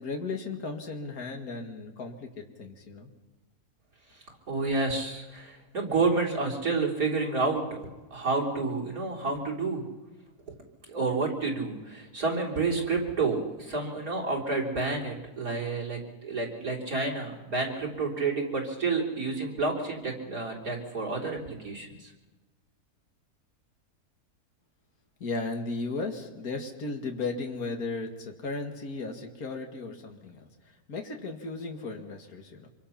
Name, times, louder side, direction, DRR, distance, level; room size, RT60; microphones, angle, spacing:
voice 1, 0.0-3.1 25.2-30.5 30.9-32.7, left 3 dB, 65° left, 3 dB, 2.5 m, -35 dB
voice 2, 4.5-7.8 8.1-9.8 10.9-22.1, right 3 dB, 65° right, -2 dB, 4.2 m, -29 dB
26.0 x 24.0 x 5.8 m, 1.2 s
omnidirectional pair, 1.7 m